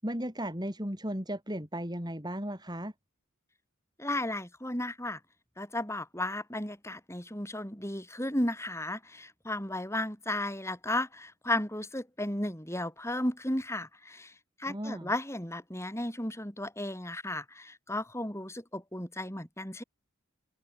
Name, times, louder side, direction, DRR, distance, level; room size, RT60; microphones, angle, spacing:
voice 1, 0.0-2.9 14.7-15.1, equal, 20° right, 6.2 m, -35 dB
voice 2, 4.0-5.2 5.6-14.3 14.6-19.8, left 1 dB, 10° left, 7.4 m, -34 dB
head